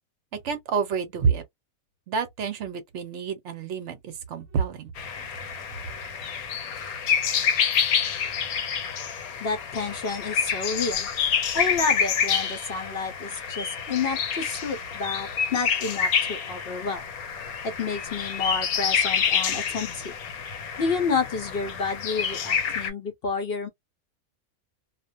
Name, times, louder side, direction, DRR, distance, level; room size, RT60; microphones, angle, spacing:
voice 1, 0.3-1.4 2.1-4.9, right 6 dB, 65° right, 0.8 m, -28 dB
sound 1, 5.0-22.9, left 7 dB, 85° left, 1.2 m, -28 dB
voice 2, 9.4-11.1 11.5-17.0 17.6-20.1 20.8-23.7, left 4 dB, 60° left, 0.6 m, -30 dB
2.4 x 2.1 x 2.4 m
omnidirectional pair, 1.5 m